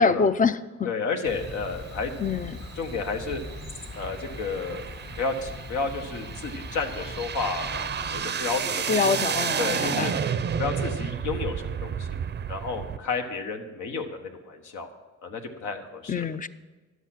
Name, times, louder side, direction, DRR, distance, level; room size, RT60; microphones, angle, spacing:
voice 1, 0.0-0.9 2.2-2.6 8.9-10.1 16.1-16.5, left 5 dB, 25° left, 13 dB, 0.5 m, -25 dB
voice 2, 0.8-2.1 2.8-3.4 3.9-4.8 5.2-9.3 9.6-10.1 10.6-12.2 12.5-14.9 15.2-16.3, left 4 dB, 75° left, 4 dB, 1.4 m, -31 dB
Chirp tweet, 1.2-8.2, left 3 dB, 55° left, 2.0 m, -41 dB
sound 1, 1.3-13.0, right 7 dB, 35° right, 0.5 m, -32 dB
11.0 x 8.1 x 6.0 m, 1.2 s
cardioid pair, 90°, 30 cm